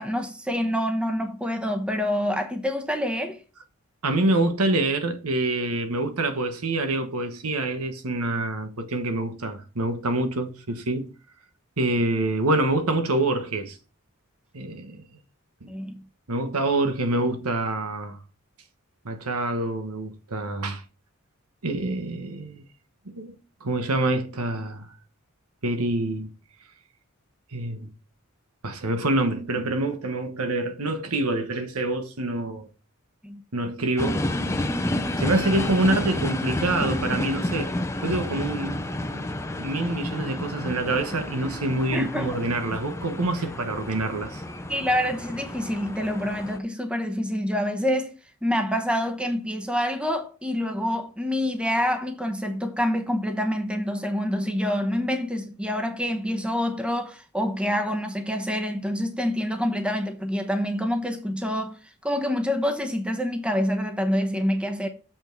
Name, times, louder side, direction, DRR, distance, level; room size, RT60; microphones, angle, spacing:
voice 1, 0.0-3.4 15.7-16.0 33.2-33.4 41.9-42.3 44.7-48.1 48.4-61.8 62.0-64.9, equal, 5° right, 1.0 m, -26 dB
voice 2, 4.0-11.1 11.8-13.8 14.5-15.0 15.6-15.7 16.3-18.2 19.0-20.8 21.6-22.6 23.0-24.9 25.6-26.3 27.5-27.9 28.6-32.7 33.5-34.3 35.2-37.7 38.0-39.3 39.6-44.4, right 2 dB, 90° right, 1.3 m, -26 dB
sound 1, 34.0-46.6, left 1 dB, 15° left, 0.6 m, -30 dB
7.1 x 6.0 x 4.6 m
head